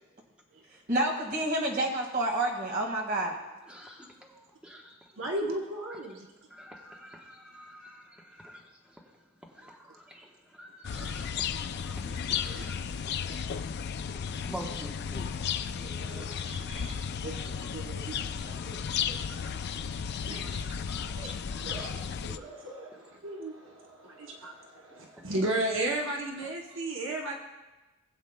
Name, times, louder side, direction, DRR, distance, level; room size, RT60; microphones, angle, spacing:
voice 1, 0.9-3.3, right 1 dB, 45° right, 0 dB, 1.9 m, -28 dB
voice 2, 3.7-5.1 5.9-6.0 6.5-9.2 9.5-11.5 11.8-12.7 13.3-13.7 14.4-16.4 16.7-16.9 17.4-17.7 18.3-18.6 19.1-19.9 20.3-21.2 21.5-21.9 25.2-25.3, equal, 5° right, -2 dB, 1.1 m, -48 dB
voice 3, 5.2-6.3 11.0-11.1 12.1-12.6 13.9-14.1 15.8-19.6 20.2-20.7 21.1-27.3, right 1 dB, 65° right, 1 dB, 0.9 m, -36 dB
sound 1, 10.8-22.4, left 7 dB, 50° left, 0.4 m, -34 dB
19.5 x 8.1 x 2.2 m, 1.1 s
head